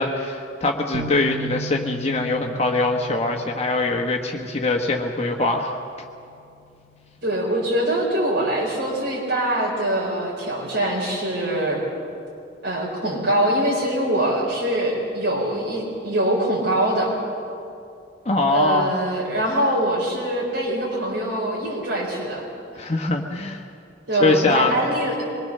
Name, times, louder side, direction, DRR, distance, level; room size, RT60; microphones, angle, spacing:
voice 1, 0.0-5.7 18.2-18.9 22.8-23.7 24.2-24.8, left 2 dB, 35° left, 2 dB, 1.2 m, -22 dB
sound 1, 0.9-4.5, right 2 dB, 45° right, 1.0 m, -36 dB
voice 2, 7.2-11.8 12.6-17.1 18.5-22.4 24.1-25.3, right 1 dB, 75° right, -5 dB, 4.6 m, -23 dB
25.0 x 21.5 x 6.7 m, 2.5 s
head